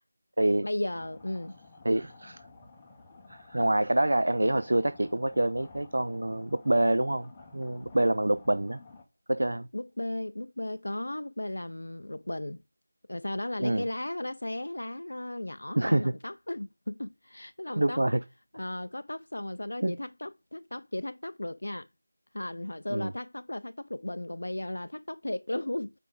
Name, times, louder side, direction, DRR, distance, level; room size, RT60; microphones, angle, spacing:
voice 1, 0.6-1.6 9.7-12.6 13.1-18.0 18.5-21.9 22.3-25.9, left 1 dB, 85° left, 0.3 m, -35 dB
sound 1, 0.9-9.0, left 3 dB, 10° left, 0.7 m, -53 dB
voice 2, 1.8-2.4 3.3-8.8 9.3-9.7 13.6-13.8 15.8-16.1 17.8-18.2 19.8-20.0 22.9-23.1, right 1 dB, 85° right, 0.4 m, -26 dB
6.8 x 4.8 x 3.8 m
figure-of-eight pair, 175°, 0 cm